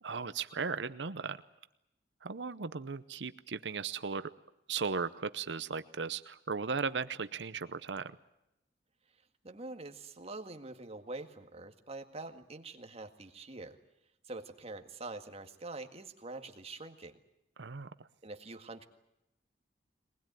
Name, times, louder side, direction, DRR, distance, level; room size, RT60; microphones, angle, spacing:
voice 1, 0.0-1.4 2.2-4.3 4.7-8.2 17.6-17.9, right 5 dB, 75° right, 13 dB, 0.8 m, -36 dB
voice 2, 9.4-13.8 14.3-17.2 18.2-18.9, right 2 dB, 35° right, 6 dB, 1.8 m, -45 dB
22.5 x 20.0 x 9.2 m, 0.86 s
head